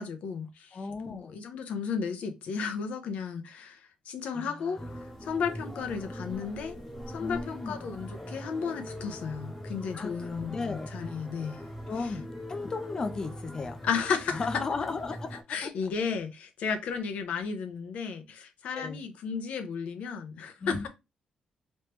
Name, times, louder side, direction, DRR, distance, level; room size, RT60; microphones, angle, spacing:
voice 1, 0.0-0.8 1.1-4.8 5.2-6.7 7.1-11.7 12.0-12.1 13.8-14.5 15.5-20.9, left 6 dB, 80° left, 0.8 m, -34 dB
voice 2, 0.7-1.4 4.3-4.9 7.2-7.9 9.9-10.9 11.9-13.8 14.3-15.7 18.7-19.0 20.6-20.9, left 4 dB, 30° left, 0.5 m, -35 dB
sound 1, 4.8-15.4, equal, 5° left, 0.9 m, -42 dB
3.2 x 3.0 x 3.2 m
wide cardioid pair, 170°, 2 cm